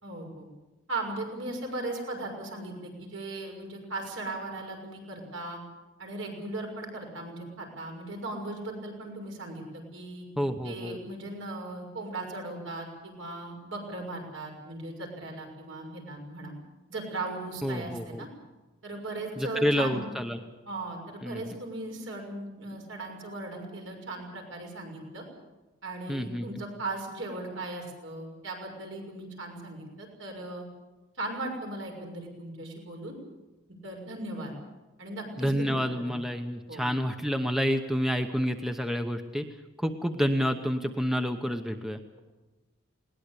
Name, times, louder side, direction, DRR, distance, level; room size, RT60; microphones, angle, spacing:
voice 1, 0.0-0.5 0.9-5.6 6.0-10.2 10.6-16.6 16.9-18.3 18.8-20.0 20.7-25.2 25.8-30.6 31.2-33.2 33.8-34.5 35.0-35.7 36.0-36.1 36.7-36.9, right 2 dB, 70° right, 1 dB, 6.3 m, -38 dB
voice 2, 10.4-11.0 17.6-18.3 19.4-20.4 21.2-21.6 26.1-26.5 35.4-39.5 39.8-42.0, equal, ahead, 6 dB, 0.9 m, -29 dB
20.5 x 19.0 x 8.3 m, 1.2 s
head